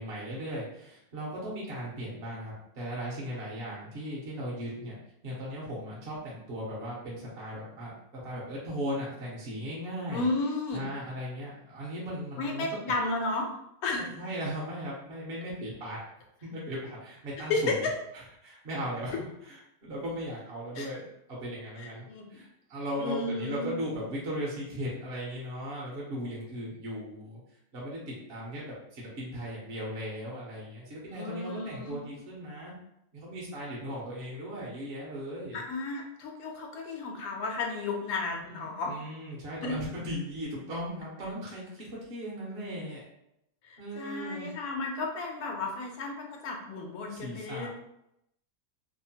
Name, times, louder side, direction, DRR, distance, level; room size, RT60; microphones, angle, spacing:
voice 1, 0.0-5.0 5.2-10.3 10.7-12.7 14.0-16.0 16.4-17.9 18.4-27.4 27.7-32.7 33.1-35.6 38.4-43.0 43.8-44.5 47.1-47.7, equal, 50° right, -5 dB, 0.9 m, -37 dB
voice 2, 10.1-10.9 12.4-13.5 13.8-14.0 17.5-17.8 19.1-19.2 20.8-20.9 21.8-22.4 23.0-23.7 31.1-32.0 35.5-38.9 39.6-39.7 43.7-47.7, left 3 dB, 80° left, 1 dB, 1.1 m, -33 dB
2.9 x 2.0 x 2.7 m, 0.80 s
omnidirectional pair, 1.5 m